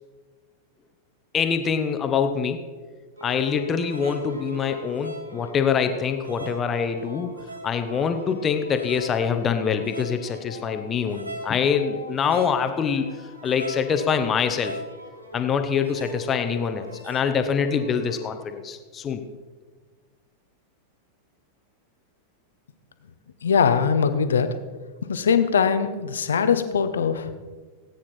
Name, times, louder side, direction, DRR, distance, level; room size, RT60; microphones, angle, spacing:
voice 1, 1.3-2.6 3.2-7.3 7.6-13.1 13.4-14.7 15.3-19.2, left 6 dB, 25° left, 8 dB, 1.1 m, -25 dB
sound 1, 3.2-18.5, equal, 85° right, 1.5 m, -40 dB
voice 2, 23.4-24.6 25.0-27.3, left 6 dB, 65° left, 10 dB, 1.0 m, -21 dB
17.5 x 9.3 x 4.5 m, 1.4 s
figure-of-eight pair, 90°, 0 cm